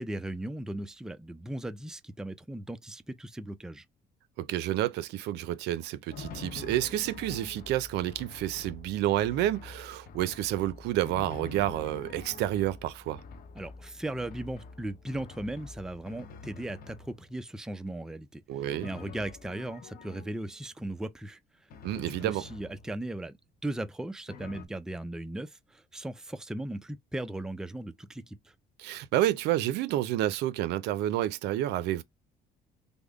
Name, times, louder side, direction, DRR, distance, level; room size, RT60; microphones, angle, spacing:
voice 1, 0.0-3.8 13.6-18.4 18.8-21.4 22.2-23.4 23.6-28.5, right 1 dB, 5° right, 0.4 m, -37 dB
voice 2, 4.4-13.2 18.5-18.9 21.8-22.4 28.8-32.0, right 13 dB, 85° right, 0.5 m, -29 dB
Drum, 6.1-17.5 18.7-20.7 21.7-23.2 24.3-24.7, left 4 dB, 60° left, 0.8 m, -46 dB
3.5 x 2.0 x 3.4 m
cardioid pair, 110°, 17 cm